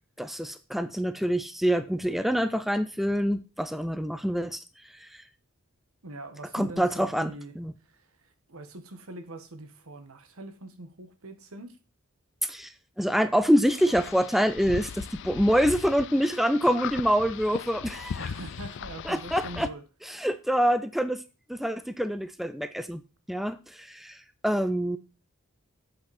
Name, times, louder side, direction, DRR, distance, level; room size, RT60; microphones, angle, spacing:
voice 1, 0.2-4.6 4.9-5.2 6.5-7.7 12.4-18.2 19.0-19.7 20.0-21.2 21.5-23.0 23.3-25.0, equal, ahead, 0.5 m, -26 dB
voice 2, 6.0-7.5 7.8-11.8 18.2-19.8, right 2 dB, 80° right, 1.3 m, -43 dB
sound 1, 13.7-19.7, left 7 dB, 55° left, 0.4 m, -38 dB
8.2 x 7.9 x 4.1 m
head